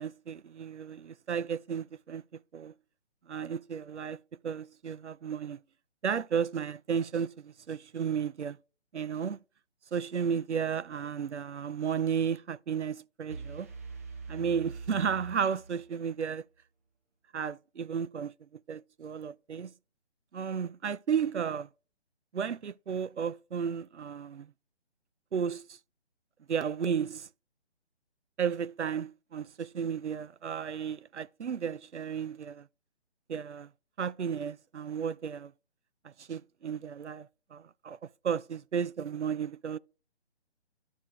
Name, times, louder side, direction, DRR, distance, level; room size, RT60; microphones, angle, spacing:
voice 1, 0.0-2.2 2.5-2.7 3.3-4.2 4.4-5.6 6.0-8.6 8.9-9.4 9.9-13.7 14.3-16.4 17.3-18.3 18.7-19.7 20.3-21.7 22.3-24.5 25.3-25.8 26.5-27.3 28.4-32.7 33.3-33.7 34.0-35.5 36.0-38.0 38.2-39.8, right 7 dB, 90° right, 0.5 m, -33 dB
sound 1, 13.3-16.2, right 4 dB, 15° right, 0.5 m, -43 dB
13.0 x 4.5 x 2.2 m
figure-of-eight pair, 145°, 34 cm